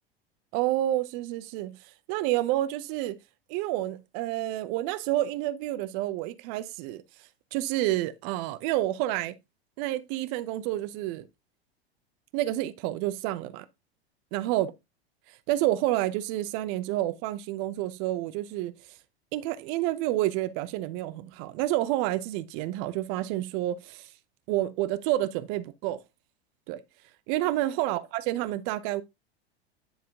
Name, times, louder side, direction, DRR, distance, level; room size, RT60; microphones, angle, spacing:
voice 1, 0.5-1.8 2.1-3.2 3.5-7.0 7.5-9.4 9.8-11.3 12.3-13.7 14.3-14.7 15.5-18.7 19.3-24.1 24.5-26.0 26.7-26.8 27.3-29.0, right 15 dB, 50° right, 0.8 m, -29 dB
9.7 x 3.6 x 3.5 m
hypercardioid pair, 90°, 32 cm